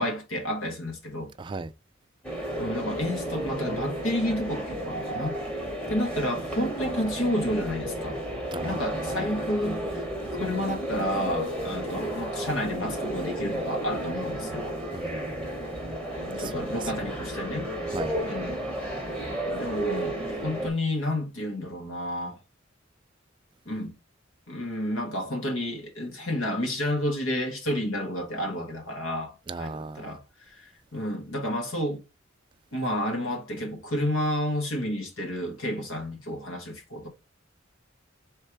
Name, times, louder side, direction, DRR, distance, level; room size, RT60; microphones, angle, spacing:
voice 1, 0.0-1.3 2.6-5.3 5.9-8.2 8.6-10.0 10.4-14.7 16.2-17.7 18.2-18.6 19.5-22.4 23.7-23.9 24.5-32.0 32.7-37.1, left 1 dB, 80° left, 1.3 m, -30 dB
voice 2, 1.4-1.7 8.5-9.2 14.9-15.3 16.4-16.7 17.9-18.1 29.5-30.2, right 3 dB, 25° right, 0.3 m, -37 dB
sound 1, 2.2-20.7, right 1 dB, 5° left, 1.2 m, -32 dB
3.3 x 3.2 x 4.4 m
head